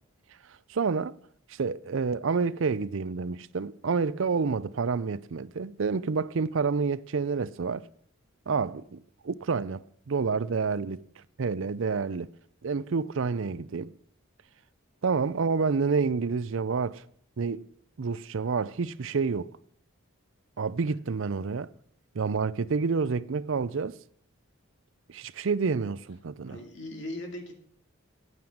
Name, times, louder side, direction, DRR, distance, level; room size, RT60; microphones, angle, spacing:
voice 1, 0.7-1.1 1.5-7.9 8.5-11.0 11.4-12.3 12.6-13.9 15.0-17.0 17.4-17.7 18.0-19.5 20.6-21.7 22.1-24.0 25.1-26.6, right 5 dB, 65° right, 0.5 m, -28 dB
voice 2, 26.4-27.6, left 1 dB, 55° left, 2.5 m, -39 dB
9.3 x 8.8 x 7.7 m
head